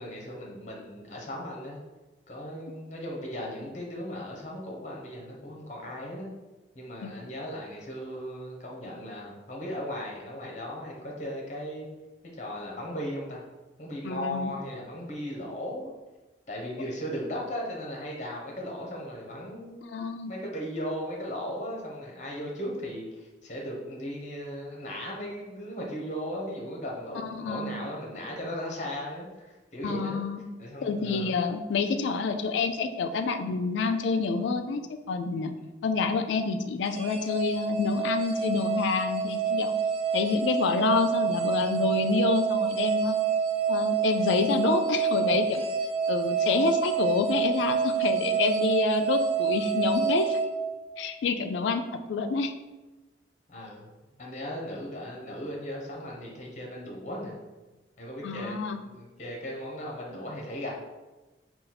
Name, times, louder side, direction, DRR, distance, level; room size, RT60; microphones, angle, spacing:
voice 1, 0.0-1.8 2.3-6.3 6.7-11.9 12.4-13.4 13.8-15.9 16.5-19.8 20.2-30.2 30.6-31.3 31.9-32.2 53.5-53.9 54.2-57.3 58.0-58.6 58.8-60.8, equal, 40° left, -1 dB, 0.8 m, -37 dB
voice 2, 14.0-14.5 19.9-20.3 27.2-27.8 29.8-30.4 30.8-35.5 35.8-39.7 40.1-43.2 43.7-45.6 46.1-50.4 51.0-51.8 52.1-52.5 58.2-58.8, left 4 dB, 75° left, 8 dB, 0.3 m, -28 dB
sound 1, 36.9-51.3, right 6 dB, 35° right, 0.4 m, -28 dB
3.9 x 2.3 x 4.1 m, 1.1 s
head